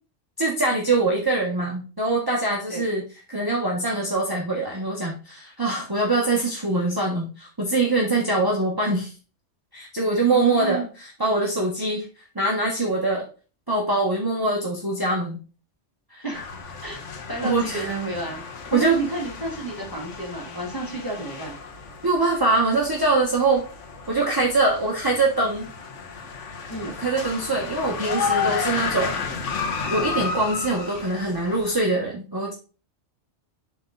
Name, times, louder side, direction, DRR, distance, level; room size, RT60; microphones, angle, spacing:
voice 1, 0.4-3.0 3.3-9.1 9.7-12.1 12.3-13.2 13.7-15.4 16.1-16.2 17.4-17.9 18.7-19.0 22.0-23.6 24.1-25.7 27.0-29.2 29.9-32.5, right 2 dB, 20° right, -2 dB, 1.2 m, -23 dB
voice 2, 10.3-10.9 16.2-16.5 16.8-17.0 17.3-18.4 18.7-21.6 26.7-26.9, right 2 dB, 15° left, -3 dB, 2.6 m, -30 dB
sound 1, 16.3-31.8, left 5 dB, 80° left, 1.3 m, -32 dB
7.8 x 3.7 x 3.9 m, 0.35 s
omnidirectional pair, 1.2 m